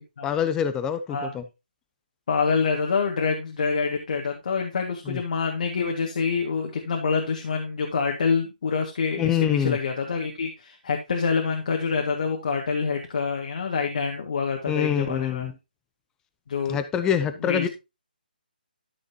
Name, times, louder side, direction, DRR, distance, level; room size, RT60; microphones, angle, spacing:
voice 1, 0.2-1.4 5.1-5.2 9.2-9.8 14.7-15.5 16.7-17.7, left 8 dB, 10° left, 10 dB, 0.7 m, -25 dB
voice 2, 2.3-15.5 16.5-16.8 17.4-17.7, left 5 dB, 55° left, 2 dB, 1.9 m, -26 dB
13.0 x 6.4 x 2.8 m, 0.25 s
figure-of-eight pair, 150°, 5 cm